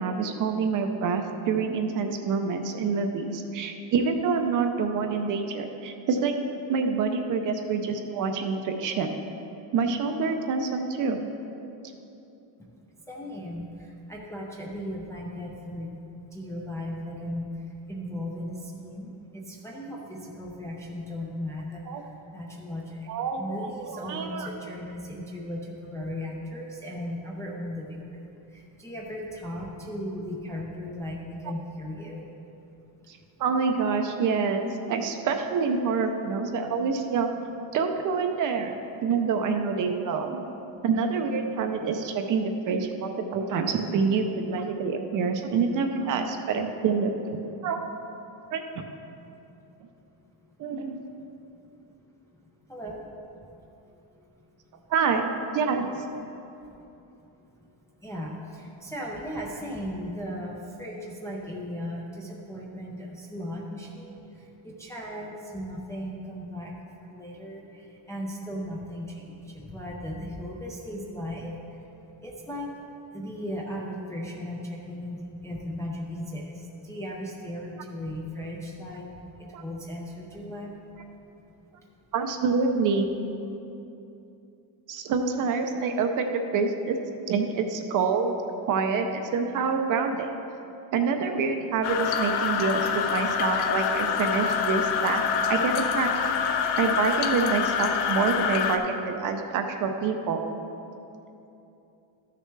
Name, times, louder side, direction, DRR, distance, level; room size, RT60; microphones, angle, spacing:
voice 1, 0.0-6.3 6.7-9.2 9.7-11.3 21.9-22.0 23.1-24.5 33.1-37.3 37.7-38.7 39.0-40.4 40.8-47.1 47.6-47.8 48.5-48.8 50.6-51.0 54.9-55.9 79.5-79.6 82.1-83.1 84.9-87.0 87.3-88.4 88.7-90.3 90.9-95.2 95.5-96.1 96.8-100.4, right 5 dB, 40° right, 5 dB, 0.6 m, -27 dB
voice 2, 13.1-23.1 23.4-32.3 52.7-53.0 53.9-54.3 54.7-54.8 56.6-56.7 57.4-57.5 57.9-71.8 72.2-72.7 73.1-80.8, equal, 5° left, -4 dB, 0.4 m, -37 dB
sound 1, 91.8-98.8, left 7 dB, 55° left, 0.7 m, -26 dB
13.0 x 6.7 x 3.2 m, 2.9 s
cardioid pair, 170°, 48 cm